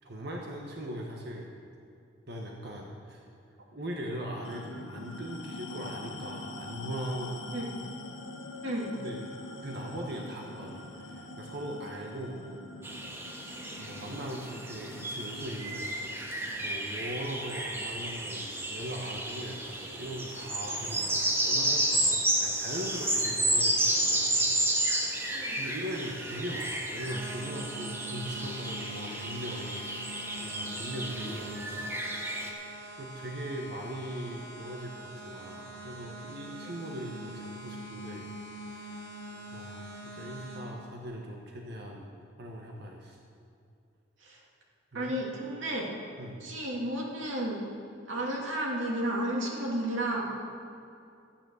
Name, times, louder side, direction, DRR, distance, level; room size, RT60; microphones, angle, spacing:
voice 1, 0.0-1.5 2.3-3.2 3.7-7.5 8.9-9.2 9.6-12.7 13.8-16.2 16.6-25.3 25.6-30.0 30.4-32.5 33.0-38.3 38.6-42.1 42.4-43.2 44.9-45.3 46.2-46.4, right 1 dB, 60° right, 0 dB, 1.2 m, -40 dB
sound 1, 4.4-19.3, left 2 dB, 80° left, 1.2 m, -45 dB
sound 2, 12.8-32.5, right 1 dB, 10° right, 1.1 m, -32 dB
voice 2, 25.3-25.6 44.2-44.4 44.9-45.9 46.4-47.6 48.1-50.3, right 1 dB, 80° right, -2 dB, 2.5 m, -32 dB
sound 3, 27.1-40.6, right 1 dB, 40° right, 3.3 m, -44 dB
13.0 x 9.6 x 6.3 m, 2.5 s
head